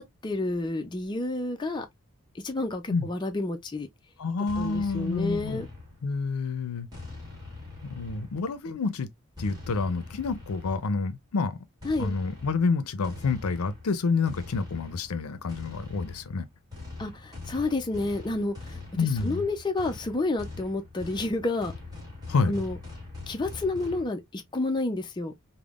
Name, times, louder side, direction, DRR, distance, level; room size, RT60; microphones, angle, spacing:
voice 1, 0.0-1.9 2.3-3.9 4.6-5.7 11.8-12.1 17.0-21.7 22.5-22.8 23.3-25.3, left 2 dB, 20° left, 0.4 m, -30 dB
voice 2, 4.2-5.7 6.0-6.9 7.9-9.1 9.4-11.6 12.0-16.5 19.0-19.4 22.3-22.6, left 4 dB, 80° left, 0.5 m, -28 dB
sound 1, 4.5-6.2 6.9-8.6 9.4-11.0 11.8-24.1, left 3 dB, 20° right, 1.3 m, -43 dB
3.5 x 2.1 x 2.3 m
head